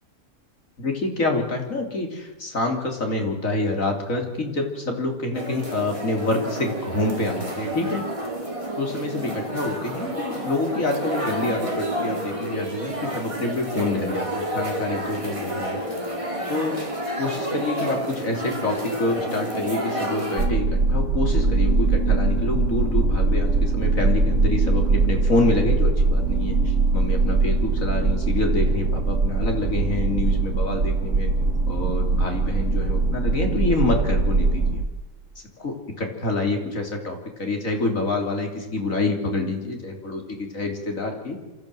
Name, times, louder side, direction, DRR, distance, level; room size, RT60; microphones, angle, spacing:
voice 1, 0.8-8.0 8.8-15.8 16.5-16.8 17.2-31.3 31.7-34.8 35.6-41.4, left 2 dB, 65° left, 3 dB, 3.5 m, -27 dB
sound 1, 5.3-20.5, right 1 dB, 20° right, 3.2 m, -30 dB
sound 2, 20.4-34.8, right 3 dB, 60° right, 1.4 m, -21 dB
27.0 x 13.5 x 7.7 m, 1.1 s
omnidirectional pair, 1.5 m